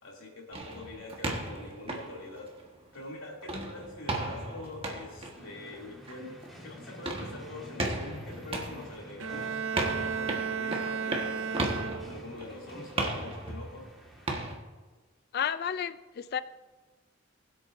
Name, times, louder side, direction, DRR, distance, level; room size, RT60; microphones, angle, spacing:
voice 1, 0.0-2.5 2.9-13.8, left 2 dB, 90° left, -2 dB, 2.8 m, -44 dB
sound 1, 0.5-3.0 3.4-14.5, right 2 dB, 30° right, 1.4 m, -36 dB
sound 2, 5.3-14.3, equal, ahead, 1.8 m, -51 dB
Bowed string instrument, 9.2-12.4, right 6 dB, 75° right, 0.5 m, -34 dB
voice 2, 15.3-16.4, left 8 dB, 50° left, 14 dB, 0.4 m, -32 dB
20.5 x 8.1 x 2.6 m, 1.3 s
head